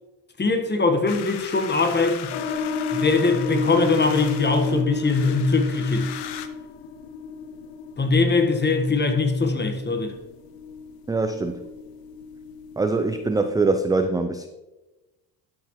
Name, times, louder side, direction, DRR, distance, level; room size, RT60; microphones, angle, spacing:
voice 1, 0.4-2.3 2.9-6.1 8.0-10.1, left 3 dB, 20° left, 1.4 m, -21 dB
sound 1, 1.1-6.5, left 10 dB, 55° left, 0.9 m, -38 dB
sound 2, 2.3-13.4, left 5 dB, 90° left, 0.9 m, -32 dB
voice 2, 11.1-11.6 12.8-14.5, right 3 dB, 10° right, 0.4 m, -23 dB
12.0 x 6.1 x 3.1 m
supercardioid pair, 70°, 48 cm